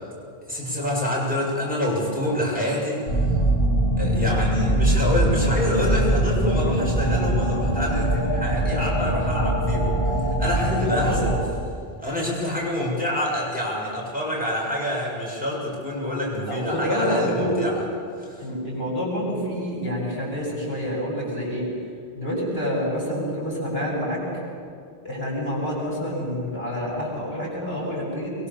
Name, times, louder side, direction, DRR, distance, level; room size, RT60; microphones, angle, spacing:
voice 1, 0.5-3.3 4.0-11.3 12.0-17.8 18.2-18.5, left 1 dB, 10° right, -5 dB, 7.3 m, -27 dB
sound 1, 3.1-11.4, right 1 dB, 30° left, 3.9 m, -22 dB
voice 2, 10.8-11.2 16.4-17.6 18.4-21.7 22.1-24.2 25.0-28.3, equal, 75° left, -4 dB, 8.1 m, -27 dB
24.0 x 22.5 x 7.2 m, 2.4 s
omnidirectional pair, 1.0 m